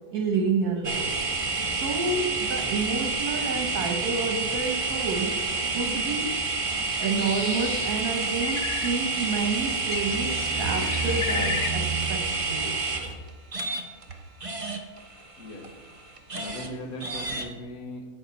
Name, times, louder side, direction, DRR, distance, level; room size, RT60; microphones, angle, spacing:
voice 1, 0.1-1.1 1.7-5.4 5.7-6.4 7.0-12.8, right 4 dB, 75° right, 3 dB, 1.5 m, -29 dB
sound 1, 0.8-14.1 14.4-16.7 17.0-17.5, right 4 dB, 25° right, 0.8 m, -29 dB
trolleybus power out, 0.9-13.2, right 2 dB, 45° right, 0.3 m, -37 dB
Bird, 6.7-12.2, left 6 dB, 55° left, 0.9 m, -36 dB
voice 2, 16.3-18.0, left 1 dB, 70° left, 2 dB, 1.7 m, -39 dB
11.0 x 7.5 x 4.1 m, 1.5 s
omnidirectional pair, 1.6 m